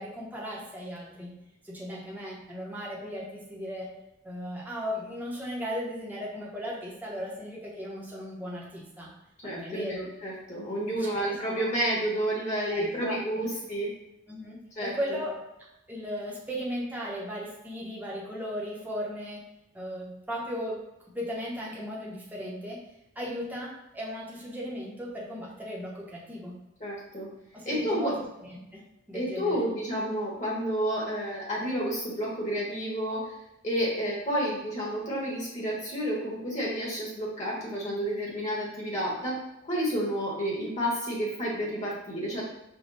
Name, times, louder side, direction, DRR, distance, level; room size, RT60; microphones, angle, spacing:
voice 1, 0.0-1.4 1.6-3.9 4.2-9.1 9.4-10.1 10.9-11.6 12.7-13.5 14.3-15.3 15.9-19.4 19.7-20.8 21.1-22.8 23.2-26.6 27.5-29.6, equal, 10° right, -4 dB, 0.8 m, -36 dB
voice 2, 9.4-13.9 14.8-15.2 26.8-27.3 27.6-28.1 29.1-33.3 33.6-39.4 39.7-42.4, equal, 35° left, -5 dB, 1.2 m, -30 dB
5.1 x 2.2 x 4.0 m, 0.90 s
head